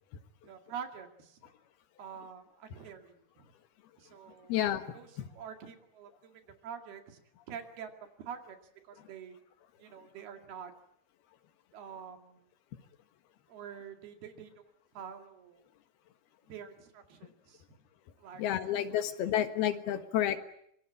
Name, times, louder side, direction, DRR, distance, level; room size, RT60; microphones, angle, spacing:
voice 1, 0.4-1.4 2.0-3.4 4.0-4.6 4.9-7.2 7.5-7.9 8.2-8.6 8.8-9.4 9.8-10.7 11.7-12.5 13.5-14.6 14.9-15.6 16.5-17.6 18.2-18.4 18.8-18.9, right 7 dB, 80° right, 5 dB, 4.3 m, -46 dB
voice 2, 4.5-4.8 18.4-20.4, left 11 dB, 80° left, 9 dB, 3.4 m, -30 dB
25.5 x 24.0 x 8.5 m, 0.72 s
omnidirectional pair, 4.4 m